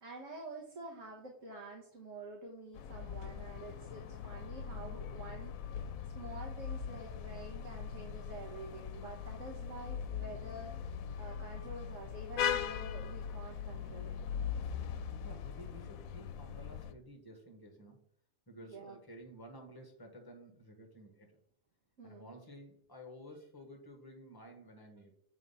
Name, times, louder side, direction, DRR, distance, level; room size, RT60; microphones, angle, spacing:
voice 1, 0.0-14.2 18.7-19.0 22.0-22.3, right 2 dB, 70° right, -1 dB, 1.6 m, -48 dB
sound 1, 2.7-16.9, left 8 dB, 85° left, 1.0 m, -40 dB
voice 2, 4.7-5.1 13.7-14.0 15.2-18.0 18.5-21.4 22.0-25.1, equal, 15° left, 3 dB, 1.4 m, -53 dB
7.5 x 3.8 x 5.6 m, 0.68 s
omnidirectional pair, 1.4 m